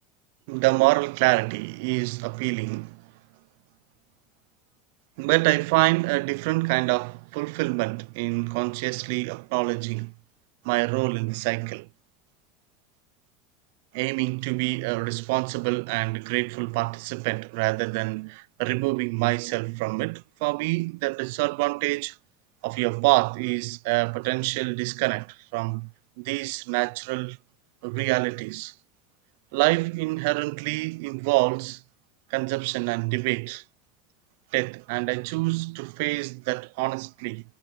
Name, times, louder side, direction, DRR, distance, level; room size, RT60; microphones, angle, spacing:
voice 1, 0.5-3.0 5.2-10.1 10.6-11.9 13.9-22.2 22.6-25.9 26.2-27.4 27.8-28.7 29.5-31.8 32.3-33.6 34.5-37.4, right 26 dB, 70° right, 0.3 m, -26 dB
supercardioid pair, 155°, 0 cm